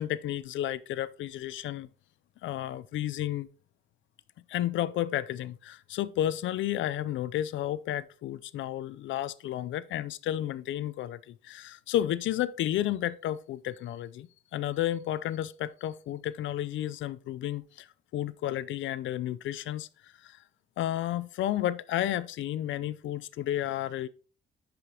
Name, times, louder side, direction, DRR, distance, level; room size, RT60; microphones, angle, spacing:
voice 1, 0.0-1.9 2.4-3.5 4.5-17.9 18.1-19.9 20.2-20.4 20.8-24.1, left 12 dB, 75° left, 0.5 m, -32 dB
11.0 x 5.1 x 2.9 m
cardioid pair, 90°, 20 cm